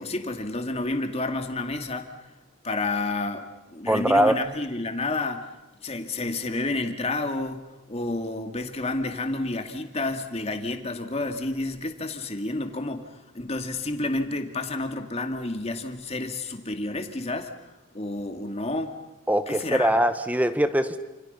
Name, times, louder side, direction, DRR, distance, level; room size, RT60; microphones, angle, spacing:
voice 1, 0.0-2.1 2.6-5.5 5.8-17.5 17.9-18.9 19.5-20.0, left 2 dB, 30° left, 6 dB, 2.4 m, -30 dB
voice 2, 3.9-4.4 19.3-21.0, right 1 dB, 10° right, 10 dB, 1.5 m, -22 dB
29.5 x 27.5 x 5.6 m, 1.0 s
head